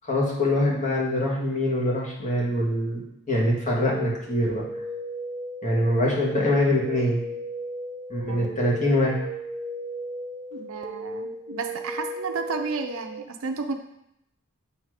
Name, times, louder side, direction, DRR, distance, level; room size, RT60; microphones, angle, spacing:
voice 1, 0.1-3.0 3.3-4.6 5.6-7.2 8.1-9.2, left 1 dB, 35° left, -4 dB, 1.6 m, -24 dB
sound 1, 3.7-13.2, right 1 dB, 15° right, 0.4 m, -36 dB
voice 2, 8.3-8.6 10.5-13.7, right 4 dB, 65° right, 5 dB, 0.6 m, -32 dB
7.8 x 3.3 x 4.8 m, 0.81 s
head